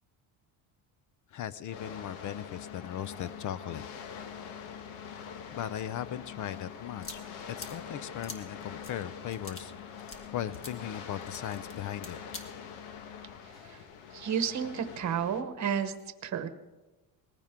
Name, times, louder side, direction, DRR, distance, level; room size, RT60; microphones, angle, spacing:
voice 1, 1.3-3.9 5.5-7.2 7.5-9.9 10.3-12.2, left 10 dB, 40° left, 17 dB, 0.4 m, -38 dB
sound 1, 1.7-15.4, left 7 dB, 85° left, 1.4 m, -44 dB
sound 2, 7.0-12.4, left 2 dB, 25° left, 1.5 m, -48 dB
voice 2, 14.1-15.9 16.2-16.5, right 8 dB, 35° right, 10 dB, 1.1 m, -31 dB
19.5 x 15.0 x 3.7 m, 1.1 s
cardioid pair, 145°, 49 cm